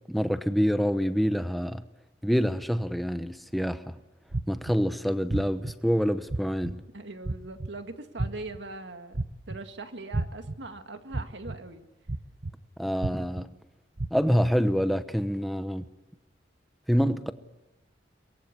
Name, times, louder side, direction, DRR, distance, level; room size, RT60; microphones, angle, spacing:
voice 1, 0.1-1.8 2.2-4.0 4.5-6.8 12.8-13.5 14.1-15.9 16.9-17.3, equal, ahead, 1.0 m, -26 dB
sound 1, 4.3-4.7 5.3-5.7 6.3-6.7 7.2-7.7 8.2-8.6 9.1-9.6 10.1-10.5 11.1-11.6 12.1-12.5 13.0-13.4 14.0-14.1, right 2 dB, 55° right, 1.0 m, -30 dB
voice 2, 6.9-9.2 9.5-11.9, right 2 dB, 75° right, 2.0 m, -41 dB
23.5 x 22.0 x 8.4 m
head